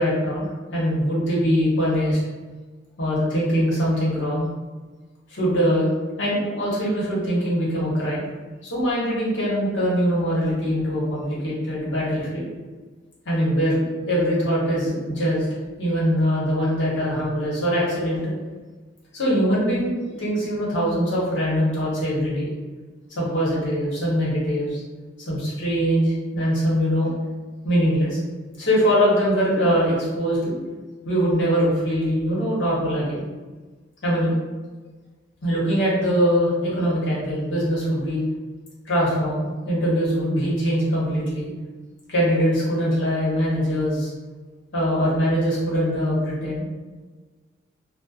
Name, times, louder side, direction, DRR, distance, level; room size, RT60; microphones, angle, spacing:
voice 1, 0.0-2.2 3.0-4.5 5.3-5.9 6.2-8.2 8.6-12.4 13.2-15.5 15.8-18.3 19.1-22.5 23.1-24.8 25.3-27.1 27.6-28.2 28.6-30.5 31.0-33.2 34.0-34.3 35.4-38.2 38.8-41.5 42.1-44.1 44.7-46.6, equal, 70° left, -7 dB, 1.0 m, -22 dB
2.5 x 2.1 x 2.3 m, 1.3 s
head